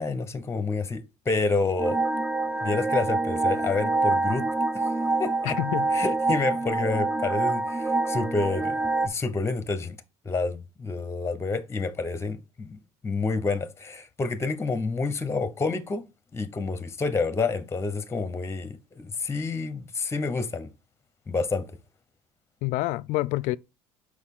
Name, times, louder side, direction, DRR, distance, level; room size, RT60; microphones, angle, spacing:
voice 1, 0.0-2.0 2.6-4.4 4.7-4.9 5.2-5.6 5.9-10.0 10.2-16.0 16.3-20.7 21.3-21.7, left 3 dB, 20° left, 0.8 m, -29 dB
sound 1, 1.8-9.1, right 3 dB, 10° right, 0.5 m, -26 dB
voice 2, 5.4-5.9 6.8-6.9 22.6-23.6, left 18 dB, 70° left, 0.4 m, -27 dB
6.3 x 4.8 x 3.6 m
supercardioid pair, 85°, 14 cm